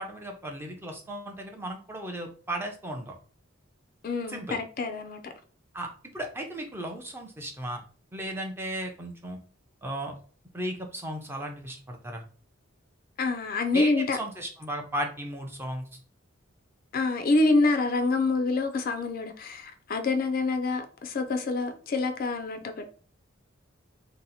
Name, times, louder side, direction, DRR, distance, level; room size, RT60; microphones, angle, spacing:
voice 1, 0.0-3.1 4.3-4.6 5.7-5.9 6.1-7.8 8.1-9.4 9.8-10.1 10.5-12.2 13.7-15.9, right 1 dB, 10° right, 0.5 m, -35 dB
voice 2, 4.0-5.3 13.2-14.2 16.9-22.9, left 3 dB, 45° left, 0.3 m, -26 dB
2.8 x 2.1 x 4.0 m
head